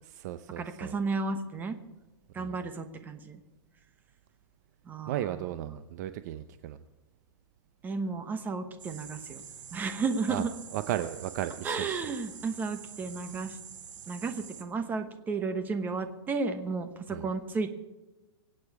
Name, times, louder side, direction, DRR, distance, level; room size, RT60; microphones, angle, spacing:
voice 1, 0.0-1.0 2.4-2.6 5.1-6.8 10.3-10.4 10.7-12.0 17.1-17.3, right 12 dB, 35° right, 11 dB, 0.6 m, -35 dB
voice 2, 0.6-1.8 2.3-3.4 4.8-5.3 7.8-9.4 9.7-10.5 11.6-13.6 14.1-17.7, right 4 dB, 10° right, 8 dB, 1.0 m, -33 dB
sound 1, 8.8-14.6, right 7 dB, 90° right, 2.3 m, -46 dB
24.5 x 8.8 x 4.8 m, 1.1 s
hypercardioid pair, 160°, 15 cm